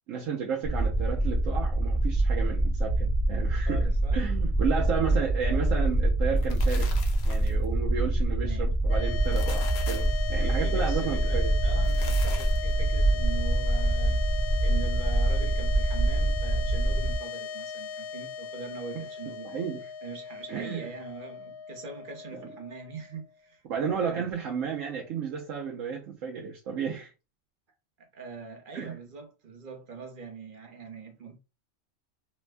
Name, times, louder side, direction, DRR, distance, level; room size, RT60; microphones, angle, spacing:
voice 1, 0.1-7.0 7.2-11.5 18.9-19.0 19.4-19.9 20.5-20.8 22.4-22.5 23.6-27.1 28.7-29.0, right 7 dB, 80° right, 1.0 m, -32 dB
sound 1, 0.6-17.2, right 1 dB, 20° left, 1.0 m, -25 dB
voice 2, 3.6-4.2 8.3-8.7 10.4-14.2 14.6-19.5 20.0-23.6 23.9-24.3 28.0-31.4, right 4 dB, 45° right, 0.8 m, -42 dB
sound 2, 6.2-7.6 9.1-10.2 11.7-12.7, left 5 dB, 60° left, 0.8 m, -43 dB
sound 3, 8.8-23.3, left 6 dB, 85° left, 1.0 m, -38 dB
3.3 x 2.1 x 3.2 m
omnidirectional pair, 1.3 m